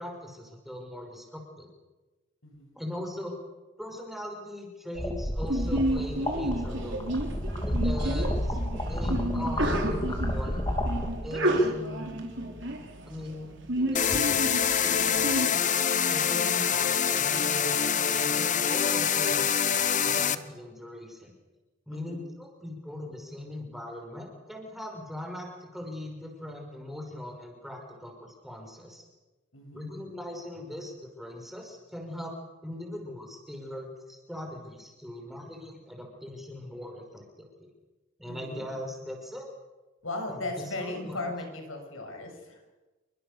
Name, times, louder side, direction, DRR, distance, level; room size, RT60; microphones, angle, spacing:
voice 1, 0.0-1.7 2.7-3.4 3.8-7.1 7.6-10.6 11.2-12.1 13.1-15.7 16.1-21.3 21.9-29.0 29.7-32.4 32.6-37.7 38.2-39.5 40.3-41.2, left 1 dB, ahead, 2 dB, 5.7 m, -40 dB
sound 1, 4.9-11.1, equal, 20° left, 3.6 m, -30 dB
Sneeze, 5.5-15.5, right 1 dB, 60° right, 4.3 m, -31 dB
sound 2, 13.9-20.3, left 7 dB, 35° left, 1.1 m, -25 dB
voice 2, 21.9-22.2 29.5-29.9 38.3-38.7 40.0-42.6, left 2 dB, 75° left, 3 dB, 6.7 m, -37 dB
29.0 x 24.0 x 7.0 m, 1.2 s
head